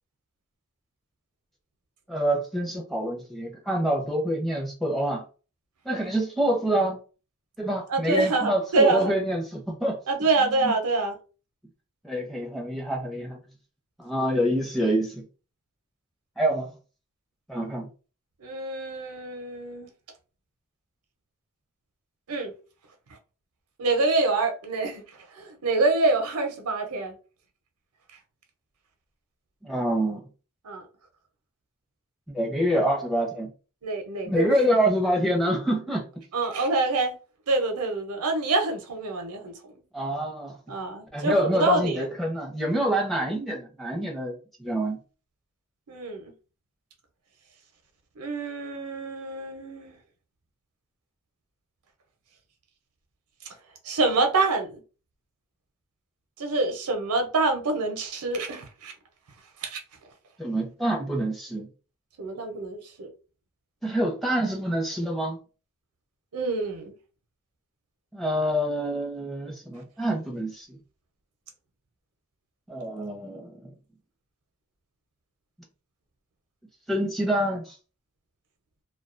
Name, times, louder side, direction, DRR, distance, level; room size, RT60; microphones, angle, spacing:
voice 1, 2.1-5.2 5.8-7.0 7.6-10.0 10.4-10.7 12.0-13.4 14.0-15.2 16.4-16.7 17.5-17.9 29.6-30.3 32.3-33.5 34.3-36.1 39.9-40.6 41.1-45.0 60.4-61.7 63.8-65.4 68.1-70.8 72.7-73.7 76.9-77.8, right 1 dB, ahead, 0.6 m, -26 dB
voice 2, 7.9-9.1 10.1-11.1 18.4-19.9 22.3-22.5 23.8-25.0 25.3-27.1 30.6-30.9 33.8-34.7 36.3-37.2 37.5-39.7 40.7-42.0 43.2-43.4 45.9-46.3 48.2-50.0 53.8-54.8 56.4-58.9 59.6-59.8 62.2-63.1 66.3-66.9, right 3 dB, 90° right, 0.6 m, -26 dB
2.3 x 2.2 x 2.4 m
head